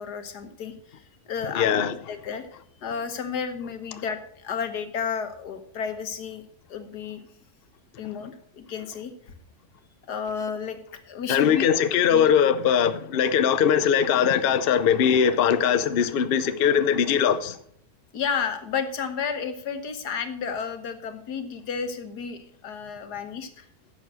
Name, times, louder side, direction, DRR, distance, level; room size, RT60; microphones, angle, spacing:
voice 1, 0.0-1.7 2.1-2.4 2.8-6.4 6.7-7.2 8.0-9.3 10.1-10.8 11.1-11.7 12.1-12.3 18.1-23.7, left 6 dB, 85° left, 1.8 m, -32 dB
voice 2, 1.5-2.0 11.3-17.6, left 8 dB, 50° left, 0.7 m, -21 dB
10.5 x 7.3 x 6.3 m
omnidirectional pair, 1.7 m